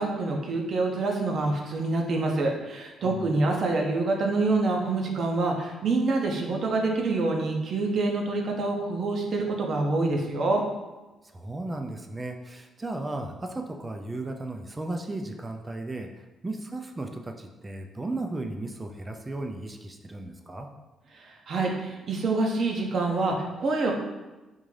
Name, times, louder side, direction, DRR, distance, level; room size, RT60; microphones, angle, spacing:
voice 1, 0.0-10.6 21.1-23.9, right 3 dB, 60° right, 1 dB, 0.6 m, -26 dB
voice 2, 3.0-3.5 11.3-20.7, right 2 dB, 20° right, 4 dB, 0.3 m, -35 dB
3.6 x 2.6 x 3.2 m, 1.1 s
cardioid pair, 90°, 0 cm